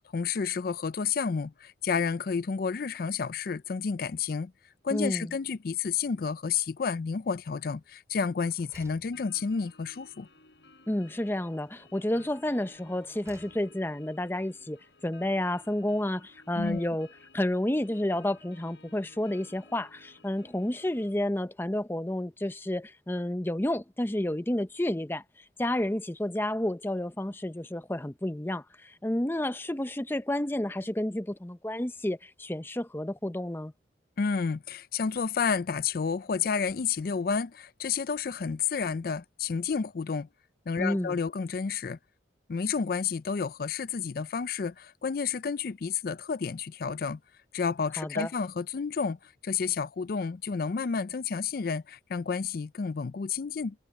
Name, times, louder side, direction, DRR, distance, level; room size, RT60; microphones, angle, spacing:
voice 1, 0.1-4.5 4.8-10.3 16.6-16.8 34.2-40.3 40.7-42.0 42.5-47.2 47.5-53.7, left 5 dB, 55° left, 0.4 m, -30 dB
voice 2, 4.9-5.3 10.9-17.1 17.3-25.2 25.6-33.7 40.8-41.2 48.0-48.3, left 1 dB, 10° left, 0.6 m, -30 dB
sound 1, 7.5-8.0 8.3-9.9 11.2-12.0 12.7-14.0, right 1 dB, 15° right, 6.6 m, -58 dB
sound 2, 9.1-21.1, left 3 dB, 75° left, 7.6 m, -57 dB
head